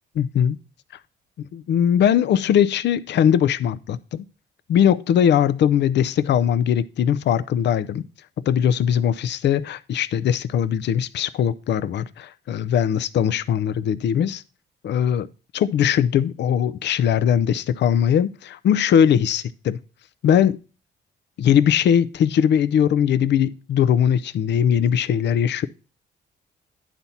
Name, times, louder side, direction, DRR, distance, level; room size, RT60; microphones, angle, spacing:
voice 1, 0.2-0.6 1.5-4.2 4.7-8.0 8.5-14.4 14.8-15.3 15.5-19.8 20.2-20.6 21.4-25.7, left 9 dB, 60° left, 0.6 m, -20 dB
10.5 x 4.2 x 5.7 m
cardioid pair, 90°, 20 cm